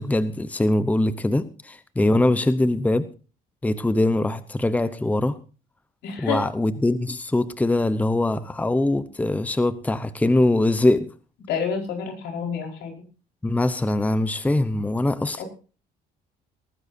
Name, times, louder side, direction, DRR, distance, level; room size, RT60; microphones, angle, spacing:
voice 1, 0.0-3.1 3.6-5.4 6.2-11.1 13.4-15.4, left 2 dB, 10° left, 0.8 m, -22 dB
voice 2, 6.0-6.4 11.5-12.9 15.4-15.5, left 6 dB, 80° left, 4.8 m, -28 dB
19.5 x 14.5 x 2.7 m
cardioid pair, 110°, 17 cm